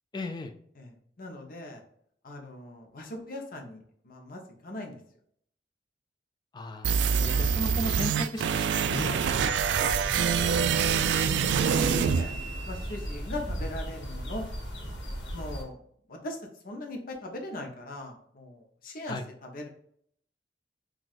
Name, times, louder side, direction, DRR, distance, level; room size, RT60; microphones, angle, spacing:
voice 1, 0.1-0.5 6.5-10.1 19.1-19.2, left 1 dB, 25° left, 7 dB, 0.4 m, -36 dB
voice 2, 0.8-1.8 2.2-5.0 10.6-11.1 12.0-12.3 12.7-14.4 15.3-15.8 16.1-16.4 16.6-19.7, left 1 dB, 55° left, 2 dB, 0.8 m, -40 dB
sound 1, 6.8-12.9, right 7 dB, 85° right, 0.3 m, -26 dB
sound 2, 9.2-15.6, equal, 85° left, 1.2 m, -36 dB
5.9 x 2.4 x 2.4 m, 0.66 s
head